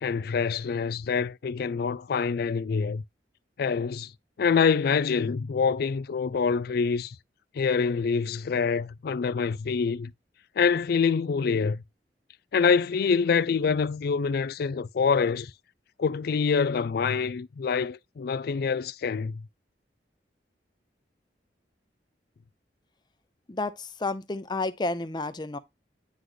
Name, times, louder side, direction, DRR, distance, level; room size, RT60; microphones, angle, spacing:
voice 1, 0.0-3.0 3.6-4.1 4.4-7.2 7.5-10.1 10.6-11.8 12.5-15.5 16.0-19.4, left 5 dB, 60° left, 0.4 m, -26 dB
voice 2, 23.5-25.6, left 2 dB, 25° left, 0.7 m, -31 dB
9.4 x 3.2 x 3.9 m
head